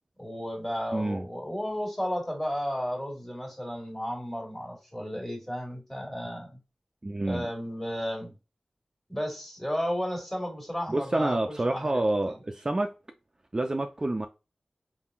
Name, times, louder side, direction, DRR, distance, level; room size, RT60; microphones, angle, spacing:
voice 1, 0.2-6.6 7.2-8.3 9.1-12.0, equal, 15° left, 1.6 m, -33 dB
voice 2, 0.9-1.3 7.0-7.5 10.9-12.9 13.5-14.3, right 2 dB, 35° right, 0.3 m, -28 dB
3.6 x 2.5 x 2.3 m
cardioid pair, 45°, 2 cm